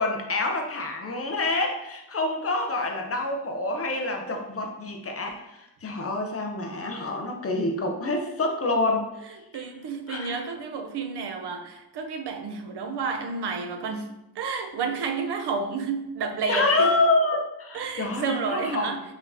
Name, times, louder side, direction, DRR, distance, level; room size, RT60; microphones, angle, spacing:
voice 1, 0.0-9.1 10.1-10.5 16.5-18.9, left 2 dB, 35° left, 2 dB, 0.6 m, -27 dB
voice 2, 9.5-17.0 17.7-19.0, right 4 dB, 85° right, 5 dB, 0.6 m, -31 dB
5.1 x 3.6 x 2.6 m, 0.91 s
wide cardioid pair, 170°, 39 cm